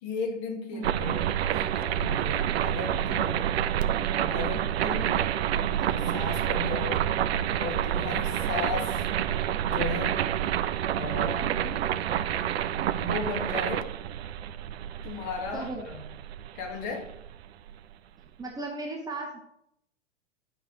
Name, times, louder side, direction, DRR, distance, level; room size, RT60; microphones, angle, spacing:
voice 1, 0.0-3.5 4.3-5.3 5.5-7.1 7.6-9.0 9.7-10.2 10.9-11.6 12.9-13.9 15.0-16.1 16.5-17.1, left 4 dB, 35° left, 4 dB, 1.6 m, -36 dB
sound 1, 0.8-17.7, right 10 dB, 55° right, 0.5 m, -28 dB
sound 2, 3.5-4.2 5.6-5.8 6.6-7.2 8.3-8.4 8.9-9.3, right 2 dB, 85° left, 2.9 m, -58 dB
voice 2, 11.4-11.8 15.5-15.9 18.4-19.4, right 3 dB, 10° right, 0 dB, 0.7 m, -36 dB
10.5 x 4.6 x 3.8 m, 0.76 s
figure-of-eight pair, 100°, 37 cm